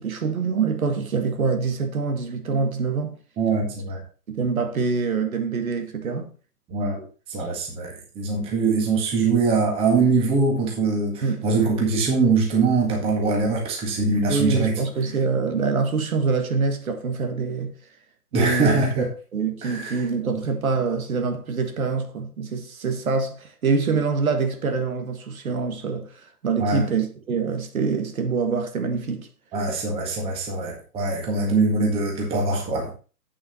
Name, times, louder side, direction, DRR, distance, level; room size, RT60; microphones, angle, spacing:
voice 1, 0.0-3.2 4.3-6.3 11.2-11.5 14.3-17.7 18.3-29.3, right 5 dB, 60° right, 1.8 m, -25 dB
voice 2, 3.4-4.0 6.7-7.0 7.3-14.7 18.3-19.0 19.6-20.0 26.6-26.8 29.5-32.9, right 3 dB, 10° right, 1.8 m, -22 dB
8.4 x 7.2 x 4.3 m
hypercardioid pair, 150°, 47 cm